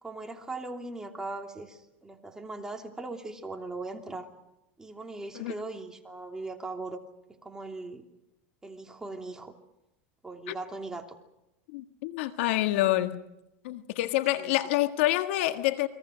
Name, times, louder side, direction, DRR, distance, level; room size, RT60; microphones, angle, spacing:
voice 1, 0.0-4.3 4.8-7.0 7.4-8.0 8.6-9.5 10.2-11.2 14.4-14.5, right 2 dB, 10° right, 3.0 m, -39 dB
voice 2, 11.7-13.2 13.6-15.9, left 16 dB, 75° left, 1.6 m, -27 dB
29.5 x 22.0 x 6.4 m
supercardioid pair, 130°, 7 cm